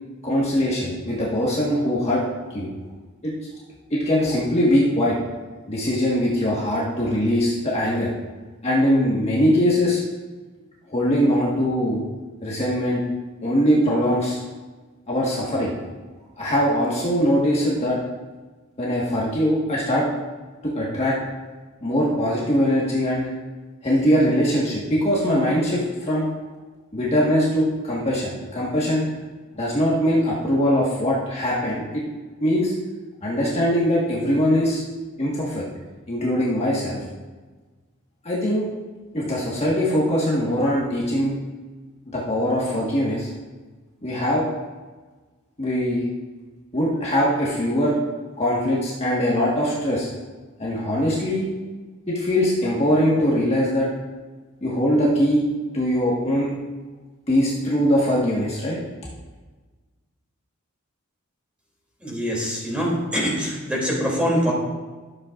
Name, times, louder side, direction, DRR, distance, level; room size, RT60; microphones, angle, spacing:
voice 1, 0.2-2.2 2.5-2.7 3.2-3.3 3.9-5.2 5.7-8.1 8.6-10.0 10.9-12.0 12.4-13.0 13.4-14.4 15.1-15.7 16.4-18.0 18.8-20.1 20.6-21.2 21.8-23.3 23.8-26.3 26.9-29.1 29.5-32.0 32.4-32.7 33.2-34.8 35.2-35.6 36.1-37.0 38.2-38.7 39.1-41.3 42.1-43.3 44.0-44.4 45.6-46.1 46.7-47.9 48.4-50.1 50.6-51.5 52.1-53.9 54.6-55.5 55.7-56.6 57.3-58.8, equal, 30° left, -6 dB, 1.5 m, -21 dB
voice 2, 62.0-64.5, equal, 5° right, -5 dB, 2.8 m, -24 dB
12.5 x 7.8 x 2.5 m, 1.3 s
head